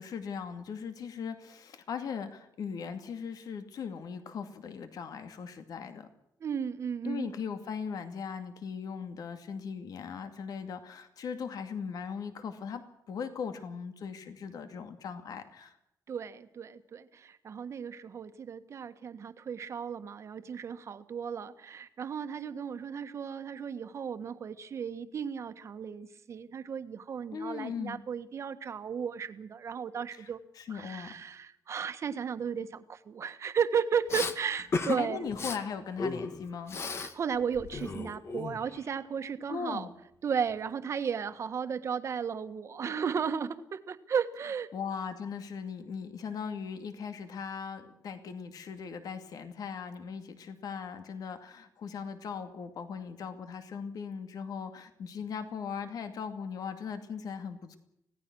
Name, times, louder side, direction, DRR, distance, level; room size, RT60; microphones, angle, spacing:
voice 1, 0.0-6.1 7.0-15.8 27.3-28.0 30.1-31.1 35.0-36.8 39.5-39.9 44.7-57.8, left 6 dB, 65° left, 8 dB, 2.4 m, -39 dB
voice 2, 6.4-7.3 16.1-30.4 30.7-35.3 37.0-39.9 40.2-44.7, right 7 dB, 45° right, 9 dB, 1.5 m, -34 dB
Respiratory sounds, 34.1-34.3 34.7-35.0 35.3-35.6 36.0-37.1 37.4-38.8, left 4 dB, 40° left, 1.7 m, -34 dB
25.5 x 17.5 x 6.2 m, 0.76 s
wide cardioid pair, 180°, 7 cm